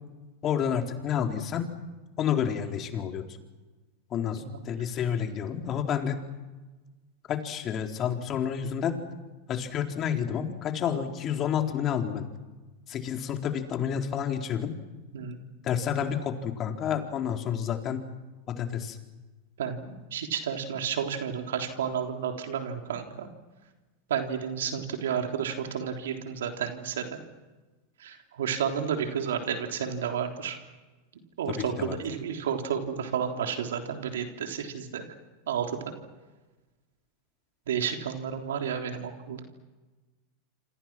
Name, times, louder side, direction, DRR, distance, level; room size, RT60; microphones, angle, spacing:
voice 1, 0.4-1.7 2.2-3.2 4.1-6.2 7.3-9.0 9.5-12.2 12.9-14.7 15.6-18.0 18.5-19.0 31.5-32.0, left 8 dB, 40° left, 4 dB, 3.9 m, -29 dB
voice 2, 19.6-23.3 24.1-27.2 28.0-30.6 31.4-35.0 35.5-35.9 37.7-39.4, right 7 dB, 75° right, 5 dB, 3.5 m, -31 dB
28.0 x 27.0 x 6.2 m, 1.2 s
hypercardioid pair, 95°, 0 cm